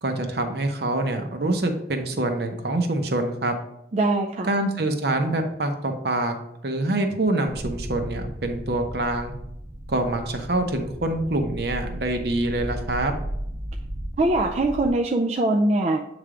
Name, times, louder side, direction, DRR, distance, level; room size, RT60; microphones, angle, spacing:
voice 1, 0.0-3.5 4.5-6.4 6.6-9.3 9.9-13.1, right 2 dB, 60° right, 5 dB, 0.8 m, -25 dB
voice 2, 3.9-4.5 14.2-16.0, right 2 dB, 35° right, 1 dB, 0.4 m, -22 dB
sound 1, 7.5-14.9, equal, 80° right, 1.2 m, -35 dB
7.9 x 3.3 x 3.7 m, 0.78 s
head